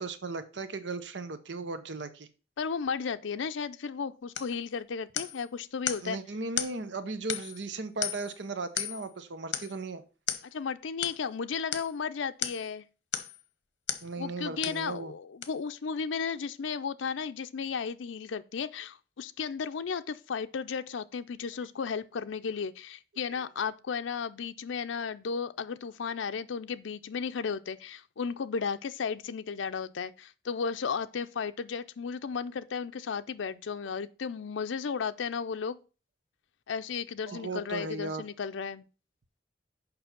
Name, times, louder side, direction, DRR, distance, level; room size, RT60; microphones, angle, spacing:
voice 1, 0.0-2.3 6.0-10.0 14.0-15.1 23.3-23.4 37.3-38.2, right 3 dB, 75° right, 0.8 m, -36 dB
voice 2, 2.6-6.2 10.5-12.8 14.2-35.8 36.7-38.9, left 6 dB, 90° left, 0.5 m, -34 dB
sound 1, 4.3-4.6 5.2-5.4 5.9-6.1 6.6-6.8 7.3-7.6 8.0-8.4 8.8-9.1 9.5-9.8 10.3-10.5 11.0-11.2 11.7-11.9 12.4-12.7 13.1-13.4 13.9-14.1 14.6-14.8 15.4-15.5, left 10 dB, 75° left, 0.9 m, -34 dB
6.8 x 5.4 x 5.8 m
head